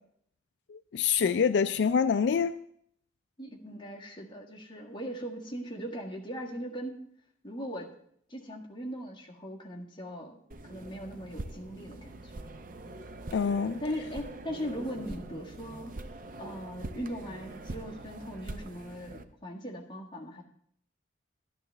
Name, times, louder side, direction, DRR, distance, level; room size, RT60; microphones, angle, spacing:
voice 1, 0.7-2.5 13.3-13.8, left 6 dB, 65° left, 11 dB, 0.3 m, -26 dB
voice 2, 3.4-7.0 7.4-7.9 8.3-12.3 13.8-15.9 16.4-20.4, equal, 25° left, -1 dB, 1.6 m, -39 dB
sound 1, 10.5-19.2, right 2 dB, 45° right, 0.6 m, -43 dB
12.0 x 11.5 x 3.3 m, 0.67 s
head